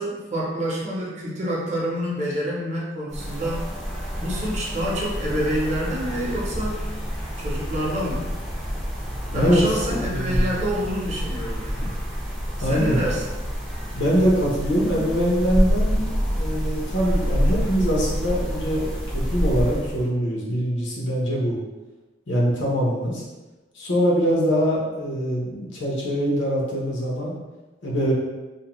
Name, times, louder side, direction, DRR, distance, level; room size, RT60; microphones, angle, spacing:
voice 1, 0.0-3.7 4.2-6.9 7.4-8.3 9.3-11.9 12.6-13.2, equal, 40° right, -4 dB, 0.6 m, -27 dB
sound 1, 3.1-20.1, equal, ahead, 0.4 m, -27 dB
voice 2, 9.3-10.5 12.6-13.0 13.9-21.6 22.3-23.2 23.7-27.3 27.8-28.1, equal, 85° left, -4 dB, 0.8 m, -23 dB
2.6 x 2.1 x 2.9 m, 1.1 s
head